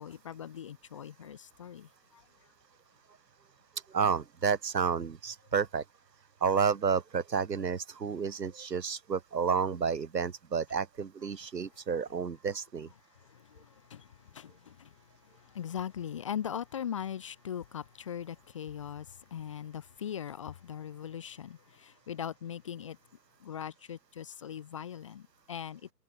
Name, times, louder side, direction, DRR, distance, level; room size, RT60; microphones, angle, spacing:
voice 1, 0.0-2.2 13.1-23.0 23.4-25.9, left 9 dB, 20° left, 0.7 m, -40 dB
voice 2, 3.9-5.8 6.4-12.9, right 6 dB, 85° right, 1.7 m, -30 dB
hypercardioid pair, 150°, 48 cm